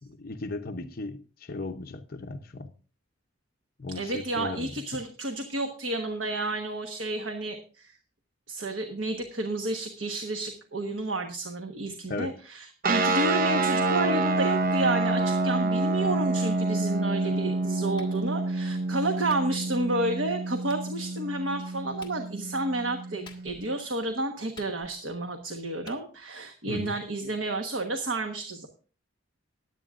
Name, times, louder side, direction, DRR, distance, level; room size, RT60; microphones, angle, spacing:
voice 1, 0.0-2.7 3.8-4.8 12.1-12.4 26.7-27.0, left 3 dB, 50° left, 0.7 m, -36 dB
voice 2, 3.9-7.9 8.5-28.7, right 2 dB, 75° right, 1.3 m, -31 dB
sound 1, 12.8-23.7, right 2 dB, 45° right, 0.7 m, -28 dB
Clapping, 18.0-18.2 19.3-19.5 20.7-20.8 22.0-22.2 23.3-23.7 24.6-25.1 25.9-26.0, left 4 dB, 25° left, 1.7 m, -49 dB
20.5 x 8.9 x 2.5 m
head